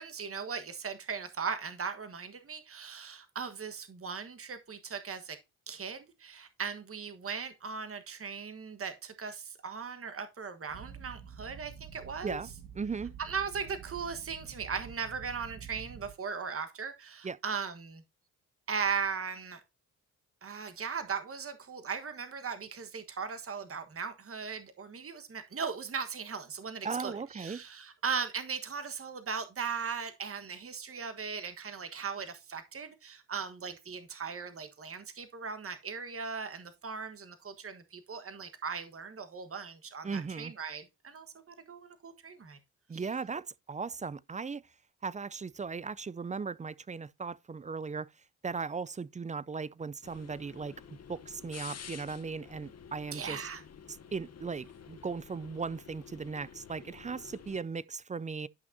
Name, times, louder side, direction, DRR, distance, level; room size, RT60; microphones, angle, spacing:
voice 1, 0.0-5.4 5.7-12.4 13.2-18.0 18.7-19.6 20.4-42.6 42.9-43.0 53.1-53.6, right 6 dB, 40° right, 1.4 m, -38 dB
sound 1, 10.7-16.1, right 7 dB, 85° right, 1.8 m, -48 dB
voice 2, 12.7-13.1 17.2-17.4 26.8-27.6 40.0-40.5 42.9-44.6 45.0-48.1 48.4-53.5 53.9-58.5, right 5 dB, 20° right, 0.4 m, -37 dB
sound 2, 50.0-57.6, left 7 dB, 45° left, 1.0 m, -50 dB
11.5 x 5.9 x 2.7 m
hypercardioid pair, 45°, 36 cm